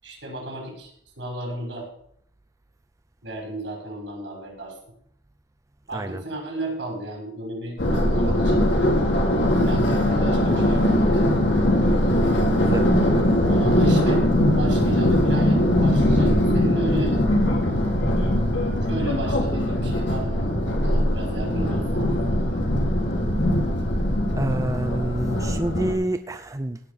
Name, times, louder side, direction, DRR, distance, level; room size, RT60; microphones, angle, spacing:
voice 1, 0.0-1.9 3.2-4.7 5.9-8.7 9.6-11.3 13.4-14.3 14.5-17.2 18.9-22.0 22.3-22.7, right 1 dB, 80° right, 0 dB, 6.3 m, -34 dB
sound 1, 7.8-25.9, left 1 dB, 80° left, 3.2 m, -21 dB
voice 2, 12.6-12.9 24.4-26.8, right 1 dB, 20° right, 9 dB, 0.6 m, -28 dB
17.0 x 5.8 x 7.0 m, 0.69 s
head